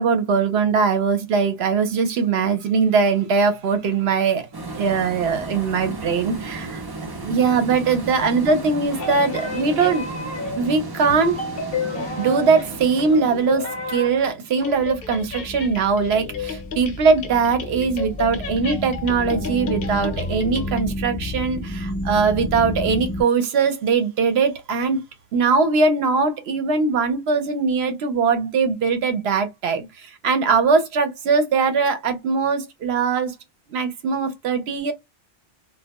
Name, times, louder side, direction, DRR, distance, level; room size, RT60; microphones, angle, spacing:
voice 1, 0.0-4.5 4.7-6.8 7.2-10.1 10.5-11.4 12.2-25.0 25.3-33.3 33.7-34.9, right 5 dB, 65° right, 0.8 m, -21 dB
sound 1, 4.5-15.1, right 2 dB, 40° right, 0.3 m, -34 dB
sound 2, 8.9-10.8 11.1-14.3 14.6-20.8, left 4 dB, 60° left, 0.8 m, -32 dB
sound 3, 14.7-23.2, left 1 dB, 25° left, 0.5 m, -31 dB
2.2 x 2.1 x 2.8 m
omnidirectional pair, 1.2 m